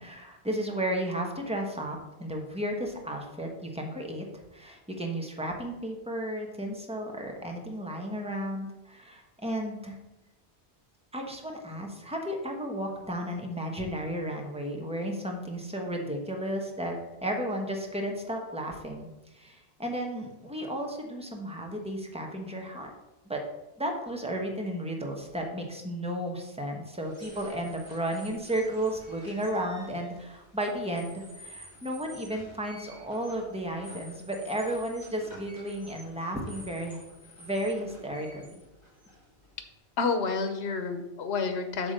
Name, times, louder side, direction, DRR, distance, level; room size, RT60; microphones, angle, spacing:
voice 1, 0.0-4.3 4.5-9.9 11.1-22.9 23.3-23.4 23.8-37.0 37.4-38.6, right 1 dB, 5° right, 1 dB, 1.0 m, -33 dB
sound 1, 27.0-39.8, equal, 20° left, 3.1 m, -50 dB
voice 2, 40.0-41.9, left 4 dB, 85° left, 8 dB, 1.1 m, -29 dB
7.7 x 3.6 x 6.6 m, 1.0 s
omnidirectional pair, 1.1 m